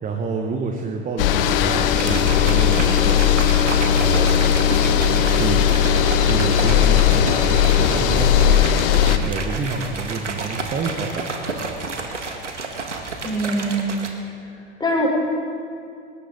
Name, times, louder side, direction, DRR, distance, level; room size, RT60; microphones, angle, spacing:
voice 1, 0.0-3.2 3.9-4.5 5.3-8.6 9.0-11.3, right 4 dB, 20° right, 3 dB, 1.3 m, -28 dB
sound 1, 1.2-9.2, left 9 dB, 50° left, 1.1 m, -17 dB
sound 2, 2.0-14.1, right 3 dB, 80° right, 1.8 m, -31 dB
voice 2, 13.2-14.0 14.8-15.1, right 1 dB, 10° left, -1 dB, 3.9 m, -22 dB
19.5 x 18.5 x 3.9 m, 2.4 s
figure-of-eight pair, 85°, 35 cm